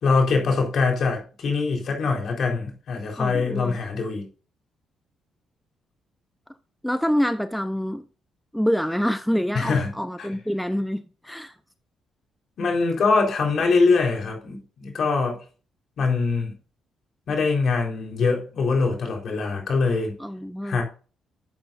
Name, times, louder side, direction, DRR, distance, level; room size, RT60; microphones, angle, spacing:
voice 1, 0.0-4.3 9.5-10.3 12.6-15.4 16.0-16.5 17.3-20.1 20.6-20.8, left 4 dB, 60° left, 4.0 m, -23 dB
voice 2, 3.2-3.8 6.8-8.0 8.5-11.5 20.2-20.8, equal, ahead, 0.7 m, -26 dB
11.0 x 7.7 x 2.6 m
cardioid pair, 90°, 0 cm